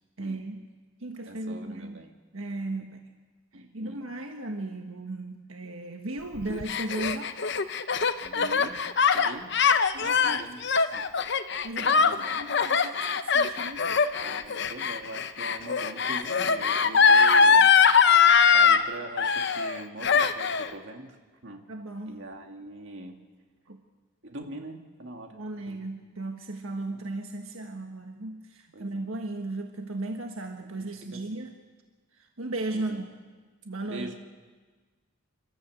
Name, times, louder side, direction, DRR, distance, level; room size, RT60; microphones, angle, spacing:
voice 1, 0.2-0.6 1.0-2.0 2.3-3.0 3.5-7.5 9.9-10.0 10.3-10.7 11.6-12.1 12.3-13.8 21.7-22.2 23.7-23.8 25.3-31.5 32.2-33.1 33.6-34.1, right 2 dB, 90° right, 3 dB, 1.5 m, -36 dB
voice 2, 1.3-2.1 3.5-4.0 8.2-8.8 9.1-9.6 10.0-10.6 10.9-11.1 11.8-12.4 14.2-17.7 18.5-21.2 21.4-21.7 22.1-23.2 24.2-25.4 25.7-25.8 26.9-27.0 28.7-29.1 30.8-31.3 32.7-33.0 33.8-34.1, right 1 dB, 60° right, 3 dB, 2.3 m, -42 dB
Gasp, 6.4-18.8 19.2-19.8 20.0-20.7, left 6 dB, 55° left, 0.8 m, -22 dB
28.0 x 13.0 x 8.0 m, 1.4 s
head